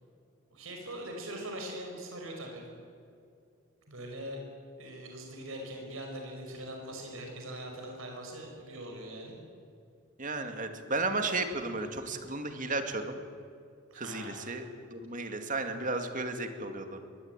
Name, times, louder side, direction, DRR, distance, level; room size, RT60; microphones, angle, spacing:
voice 1, 0.5-2.7 3.9-4.4 4.8-9.4 13.9-14.5, right 1 dB, 85° right, 2 dB, 5.3 m, -42 dB
voice 2, 10.2-13.2 14.0-14.7 14.9-17.0, right 3 dB, 40° right, 6 dB, 2.4 m, -34 dB
23.0 x 19.0 x 9.0 m, 2.4 s
head